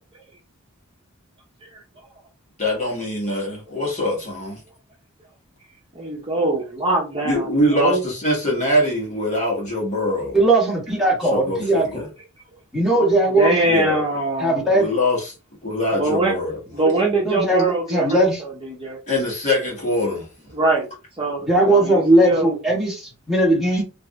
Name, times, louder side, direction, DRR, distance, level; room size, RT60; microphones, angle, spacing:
voice 1, 2.6-4.6 7.2-10.4 11.2-12.1 13.6-14.0 14.7-15.3 15.6-16.6 19.1-20.3, left 1 dB, 35° left, 1.5 m, -23 dB
voice 2, 5.9-8.0 13.3-14.7 15.9-16.4 16.7-19.0 20.5-20.9 21.2-22.5, right 2 dB, 25° right, 1.0 m, -23 dB
voice 3, 10.3-12.0 12.7-13.6 14.4-14.9 17.3-18.4 21.5-23.8, right 1 dB, ahead, 1.7 m, -18 dB
4.6 x 2.6 x 2.3 m
head